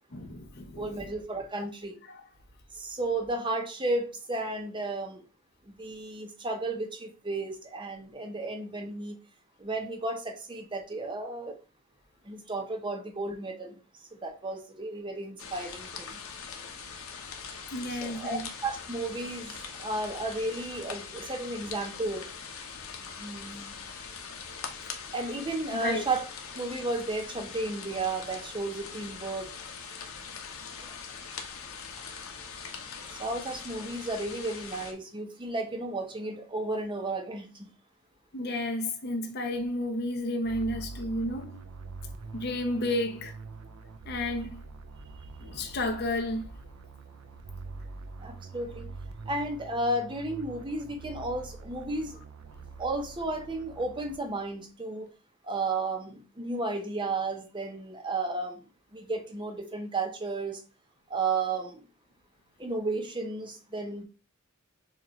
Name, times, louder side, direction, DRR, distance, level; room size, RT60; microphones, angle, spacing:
voice 1, 0.1-1.1 1.5-1.7 2.1-2.3 17.7-18.5 25.8-26.1 38.3-41.6 42.3-43.3 44.0-44.6 45.4-46.6, left 1 dB, 50° left, 0.8 m, -32 dB
voice 2, 0.8-2.0 2.7-5.2 5.7-9.2 9.6-11.6 12.3-13.8 14.2-16.2 18.0-22.3 23.2-23.8 25.1-26.2 26.5-29.5 30.8-30.9 33.2-37.7 44.4-44.5 48.2-48.9 49.3-52.2 52.8-55.1 55.4-58.6 58.9-60.6 61.1-61.8 62.6-64.0, right 2 dB, 20° right, 0.7 m, -33 dB
sound 1, 15.4-34.9, left 6 dB, 80° left, 0.9 m, -42 dB
sound 2, 40.4-54.6, right 4 dB, 90° right, 0.5 m, -45 dB
6.8 x 2.5 x 3.1 m
head